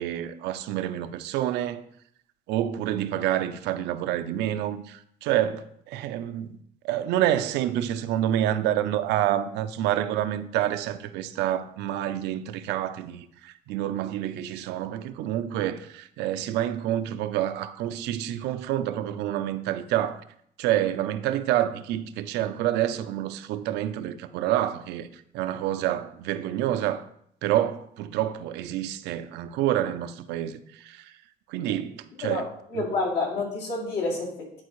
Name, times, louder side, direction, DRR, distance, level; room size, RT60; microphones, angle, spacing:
voice 1, 0.0-1.8 2.5-6.6 6.8-20.2 20.6-27.0 27.4-31.1 31.5-32.5 32.7-32.8, right 12 dB, 90° right, 0.5 m, -28 dB
voice 2, 32.2-34.6, left 3 dB, 75° left, 2.5 m, -29 dB
10.5 x 4.4 x 3.1 m
cardioid pair, 110°, 17 cm